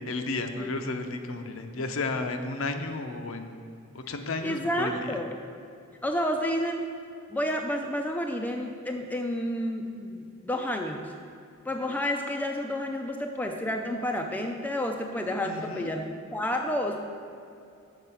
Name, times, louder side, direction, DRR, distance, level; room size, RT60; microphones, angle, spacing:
voice 1, 0.0-3.6 3.9-5.1 15.4-15.9, left 3 dB, 65° left, 6 dB, 0.6 m, -33 dB
voice 2, 4.4-5.4 6.0-6.8 7.3-11.1 11.7-16.0 16.3-17.0, left 1 dB, 10° left, 3 dB, 0.3 m, -30 dB
7.3 x 5.4 x 5.5 m, 2.5 s
head